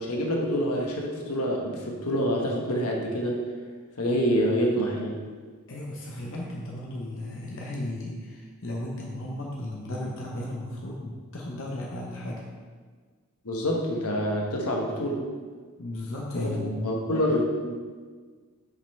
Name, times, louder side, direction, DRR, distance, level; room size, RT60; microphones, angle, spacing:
voice 1, 0.0-3.4 4.0-5.2 13.4-15.3 16.3-16.6 16.8-17.8, equal, 90° left, -1 dB, 1.3 m, -26 dB
voice 2, 5.7-12.5 15.8-16.9, left 1 dB, 60° left, -3 dB, 0.9 m, -35 dB
6.5 x 5.4 x 4.4 m, 1.5 s
head